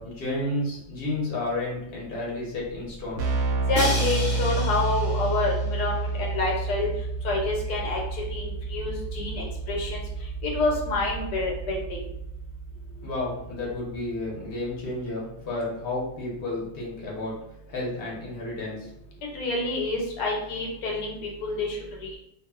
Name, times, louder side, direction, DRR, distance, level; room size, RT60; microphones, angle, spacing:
voice 1, 0.0-3.2 12.9-17.4 17.7-18.9, left 2 dB, 45° left, -5 dB, 0.9 m, -31 dB
Keyboard (musical), 2.9-13.5, right 3 dB, 70° right, 0.7 m, -30 dB
voice 2, 3.7-6.9 7.2-10.0 10.4-12.0 19.3-22.2, left 2 dB, 85° left, -1 dB, 1.2 m, -28 dB
Crash cymbal, 3.7-5.8, equal, 5° left, 1.1 m, -33 dB
2.6 x 2.3 x 2.3 m, 0.80 s
omnidirectional pair, 1.7 m